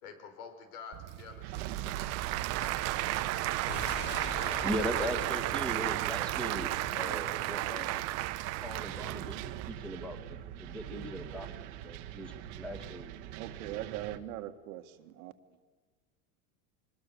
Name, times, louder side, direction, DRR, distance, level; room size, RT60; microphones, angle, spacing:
voice 1, 0.0-3.6, left 5 dB, 75° left, 6 dB, 5.2 m, -50 dB
Applause / Crowd, 0.9-9.7, right 17 dB, 35° right, 0.8 m, -34 dB
sound 1, 1.4-14.2, right 12 dB, 55° right, 1.4 m, -43 dB
sound 2, 3.7-6.8 7.1-7.2, left 3 dB, 25° left, 2.9 m, -42 dB
voice 2, 4.5-8.0 8.6-13.2, equal, 5° left, 5 dB, 2.1 m, -39 dB
voice 3, 13.4-15.3, right 13 dB, 75° right, 9 dB, 1.8 m, -40 dB
25.5 x 21.0 x 7.0 m, 1.4 s
supercardioid pair, 155°, 43 cm